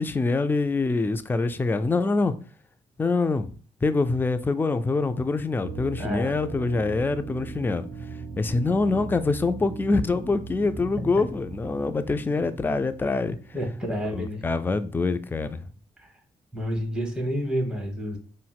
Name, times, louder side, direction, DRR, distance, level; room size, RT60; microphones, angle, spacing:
voice 1, 0.0-2.3 3.0-3.5 3.8-7.8 8.4-13.4 14.1-15.6, left 3 dB, 15° left, 11 dB, 0.3 m, -25 dB
sound 1, 5.6-14.3, right 3 dB, 80° right, 0.5 m, -39 dB
voice 2, 6.0-6.3 13.5-14.4 16.0-16.1 16.5-18.2, equal, 5° right, 1 dB, 1.0 m, -29 dB
4.0 x 2.1 x 2.3 m, 0.41 s
supercardioid pair, 50°, 16 cm